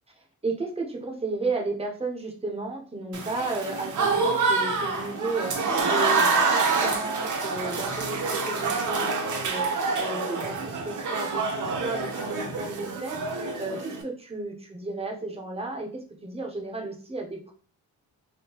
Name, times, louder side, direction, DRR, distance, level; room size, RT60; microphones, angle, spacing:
voice 1, 0.4-17.5, right 3 dB, 15° right, 1 dB, 0.6 m, -33 dB
Applause / Crowd, 3.1-14.0, right 4 dB, 55° right, 0.7 m, -27 dB
3.4 x 2.6 x 2.9 m, 0.42 s
wide cardioid pair, 180°, 37 cm